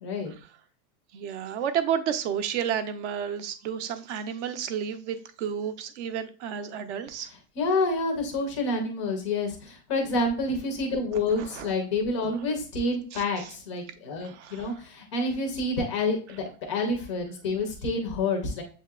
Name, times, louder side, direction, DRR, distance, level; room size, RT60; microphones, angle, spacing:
voice 1, 0.0-0.3 7.6-18.6, left 2 dB, 20° left, 0.4 m, -28 dB
voice 2, 1.1-7.3 11.4-11.7 13.1-13.5 14.2-14.8, right 8 dB, 50° right, 0.5 m, -31 dB
7.4 x 2.8 x 2.2 m
supercardioid pair, 170°, 46 cm